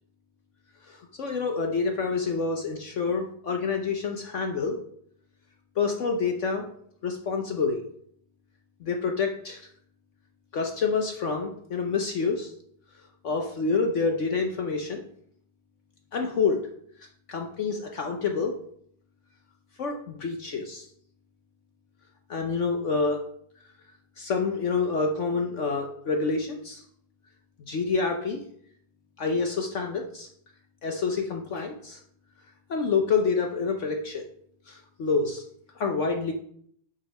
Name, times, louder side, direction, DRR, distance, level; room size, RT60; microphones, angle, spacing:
voice 1, 0.9-4.8 5.8-6.7 7.0-7.8 8.8-9.6 10.5-12.5 13.2-15.0 16.1-16.6 17.3-18.6 19.8-20.9 22.3-23.2 24.2-26.8 27.6-28.4 29.2-30.3 30.8-32.0 32.7-34.2 34.7-35.4 35.7-36.3, left 4 dB, 65° left, 3 dB, 0.7 m, -27 dB
6.5 x 5.3 x 5.4 m, 0.65 s
omnidirectional pair, 2.3 m